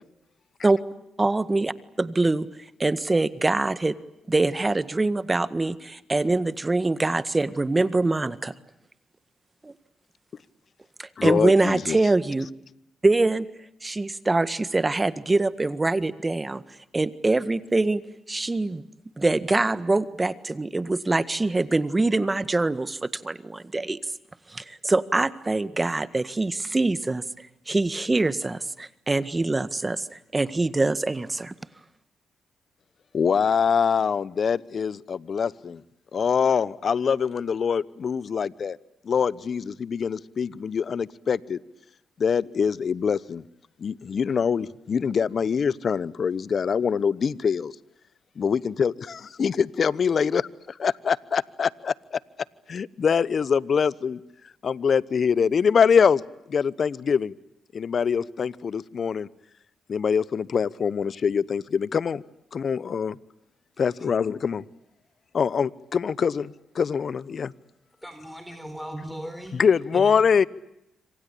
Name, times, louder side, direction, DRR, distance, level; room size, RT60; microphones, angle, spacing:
voice 1, 1.2-1.7 2.0-2.5 2.8-3.9 4.3-8.5 9.6-9.7 11.0-12.5 13.0-13.5 13.8-16.6 16.9-18.0 18.3-18.8 19.2-24.0 24.5-27.2 27.7-31.5, right 2 dB, 25° right, 1.7 m, -24 dB
voice 2, 11.2-12.0 33.1-35.8 36.1-38.8 39.1-41.6 42.2-43.4 43.8-47.7 48.4-50.5 50.8-51.9 52.7-54.2 54.6-56.2 56.5-57.3 57.7-59.3 59.9-62.2 62.5-63.2 63.8-64.6 65.3-67.5 69.5-70.5, left 6 dB, 55° left, 1.0 m, -24 dB
voice 3, 68.0-69.6 69.9-70.1, equal, ahead, 4.3 m, -38 dB
27.0 x 26.0 x 8.4 m
supercardioid pair, 50°, 0 cm